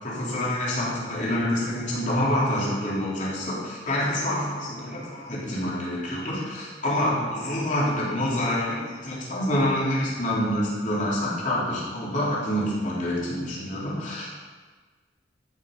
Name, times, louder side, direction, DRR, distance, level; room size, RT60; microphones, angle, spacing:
voice 1, 0.0-14.3, left 1 dB, 45° left, -6 dB, 3.4 m, -27 dB
12.5 x 6.5 x 5.3 m, 1.4 s
head